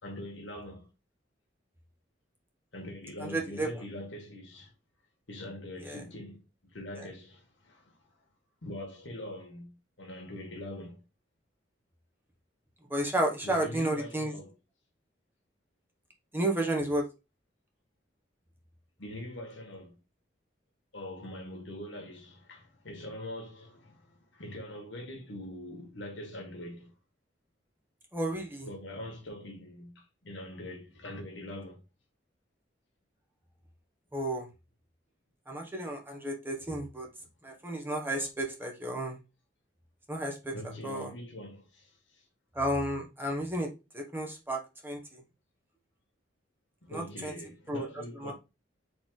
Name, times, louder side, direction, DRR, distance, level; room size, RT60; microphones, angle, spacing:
voice 1, 0.0-0.9 2.7-4.7 5.3-8.1 8.6-11.0 13.4-14.5 16.3-16.4 19.0-20.0 20.9-26.9 28.7-31.8 40.5-42.2 46.8-48.3, left 1 dB, 85° left, 1.5 m, -43 dB
voice 2, 3.2-3.7 5.8-6.0 7.0-7.1 12.9-14.3 16.3-17.0 28.1-28.7 34.1-34.5 35.5-37.1 37.4-39.2 40.1-40.5 40.8-41.1 42.5-43.7 43.9-45.2 46.9-47.3 47.7-47.9 48.2-48.3, right 1 dB, 10° right, 1.0 m, -32 dB
4.2 x 3.3 x 3.8 m
head